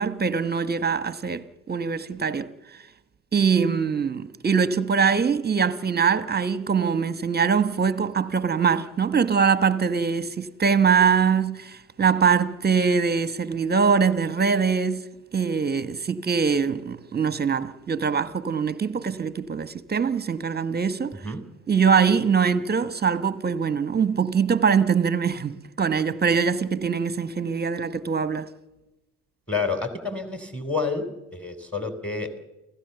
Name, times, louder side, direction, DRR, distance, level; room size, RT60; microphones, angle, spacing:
voice 1, 0.0-2.5 3.3-21.2 21.7-28.5, right 6 dB, 20° right, 1.3 m, -23 dB
voice 2, 29.5-32.4, left 4 dB, ahead, 3.8 m, -29 dB
29.0 x 16.5 x 7.0 m
hypercardioid pair, 70°, 46 cm